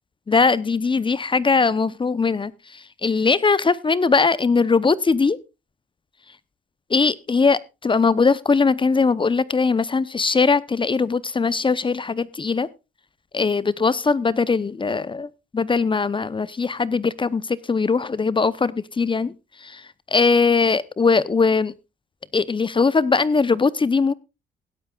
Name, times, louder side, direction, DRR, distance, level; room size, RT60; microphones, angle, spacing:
voice 1, 0.3-5.4 6.9-12.7 13.3-19.3 19.6-19.9 20.1-21.7 22.3-24.1, left 4 dB, 25° left, 20 dB, 0.7 m, -20 dB
17.0 x 11.5 x 2.3 m, 0.26 s
cardioid pair, 90°, 20 cm